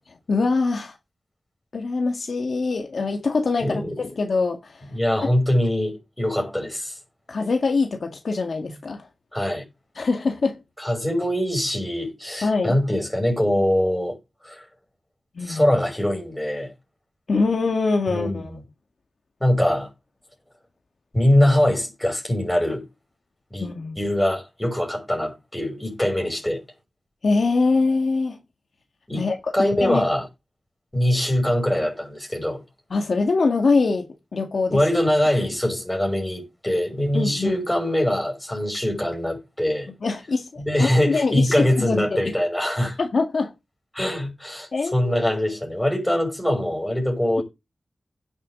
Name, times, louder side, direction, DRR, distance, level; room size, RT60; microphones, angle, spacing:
voice 1, 0.3-1.0 1.7-4.9 5.2-5.3 7.3-9.1 10.0-10.6 12.4-12.8 15.4-15.7 17.3-18.5 23.6-24.0 27.2-28.4 29.2-29.5 29.8-30.0 32.9-34.8 37.1-37.6 40.0-42.3 43.0-43.5 44.7-45.4, left 3 dB, 60° left, 1.7 m, -23 dB
voice 2, 3.6-4.1 4.9-6.9 9.3-9.6 10.8-14.2 14.4-14.6 15.5-16.7 18.1-18.6 19.4-19.9 21.1-22.8 23.5-23.7 24.0-26.6 29.1-29.2 29.5-30.3 30.9-32.6 34.7-39.9 40.6-43.0 43.9-47.4, left 1 dB, 5° left, 6.4 m, -23 dB
16.5 x 7.4 x 3.7 m
wide cardioid pair, 125°, 0 cm